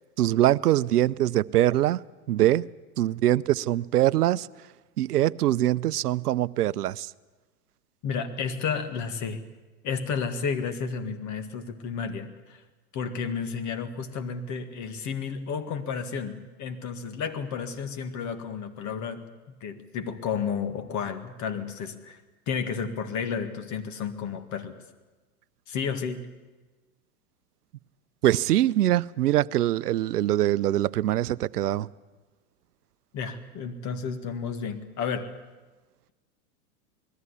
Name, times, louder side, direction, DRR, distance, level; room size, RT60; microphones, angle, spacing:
voice 1, 0.2-2.0 2.3-2.7 3.0-4.5 5.0-7.1 28.2-31.9, right 13 dB, 90° right, 0.6 m, -23 dB
voice 2, 8.0-9.5 9.8-12.6 12.9-22.2 22.5-24.7 25.7-26.3 33.1-35.3, left 6 dB, 40° left, 1.9 m, -32 dB
20.5 x 14.0 x 9.8 m
hypercardioid pair, 105°, 45 cm